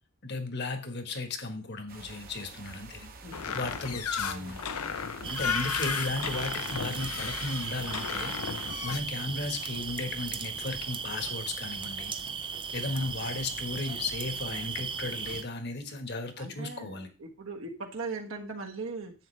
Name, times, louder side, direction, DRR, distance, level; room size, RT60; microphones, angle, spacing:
voice 1, 0.2-4.6 5.3-8.3 8.8-12.1 12.7-17.1, left 3 dB, 50° left, 7 dB, 1.4 m, -35 dB
sound 1, 1.9-8.9, right 3 dB, 40° right, 1.0 m, -48 dB
sound 2, 3.3-9.0, left 7 dB, 90° left, 0.8 m, -34 dB
voice 2, 4.2-4.6 16.4-19.1, right 3 dB, 70° right, 1 dB, 1.5 m, -39 dB
sound 3, 5.2-15.4, right 6 dB, 20° right, 0.5 m, -37 dB
10.5 x 8.0 x 3.3 m, 0.32 s
head